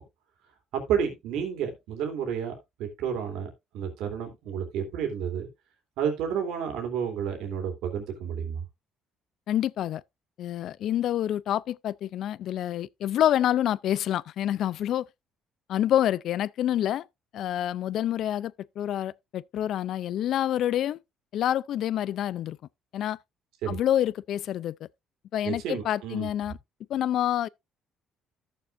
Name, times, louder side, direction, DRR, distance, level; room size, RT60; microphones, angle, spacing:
voice 1, 0.7-2.5 2.8-5.5 6.0-8.6 23.6-23.8 25.4-26.3, right 8 dB, 80° right, 2.7 m, -31 dB
voice 2, 9.5-10.0 10.4-15.1 15.7-17.1 17.3-21.0 21.3-22.6 22.9-23.2 23.7-24.8 25.3-26.6 26.9-27.5, left 11 dB, 65° left, 0.4 m, -27 dB
14.0 x 6.7 x 2.6 m
cardioid pair, 110°, 0 cm